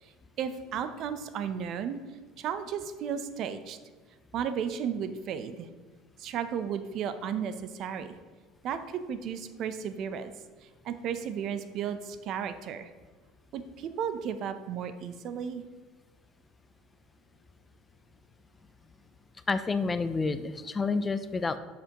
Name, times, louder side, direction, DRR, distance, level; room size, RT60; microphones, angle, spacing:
voice 1, 0.0-2.0 2.4-3.8 4.3-5.7 6.2-8.2 8.6-10.3 10.6-12.9 13.5-15.6, right 8 dB, 55° right, 11 dB, 0.6 m, -34 dB
voice 2, 19.5-21.6, left 4 dB, 20° left, 12 dB, 0.4 m, -29 dB
7.6 x 6.8 x 2.9 m, 1.4 s
supercardioid pair, 110°, 0 cm